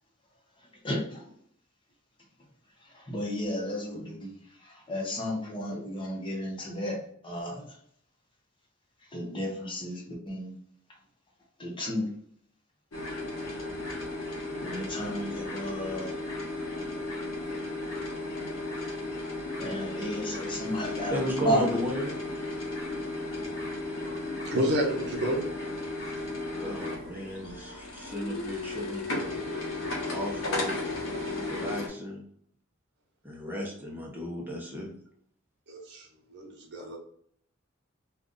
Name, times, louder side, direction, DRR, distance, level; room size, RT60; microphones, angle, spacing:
voice 1, 0.8-1.3 2.9-7.0 7.2-7.7 9.1-10.6 11.6-12.1 14.6-16.1 19.6-21.6, equal, 25° left, -1 dB, 0.9 m, -33 dB
sound 1, 12.9-31.9, left 2 dB, 85° left, 0.9 m, -35 dB
voice 2, 20.6-22.1 26.5-29.1 30.1-30.7 31.4-32.2 33.2-34.9, equal, 10° right, -2 dB, 0.8 m, -34 dB
voice 3, 24.0-25.5 26.5-26.7 35.7-37.0, equal, 60° right, 0 dB, 0.8 m, -31 dB
2.6 x 2.5 x 3.7 m, 0.65 s
head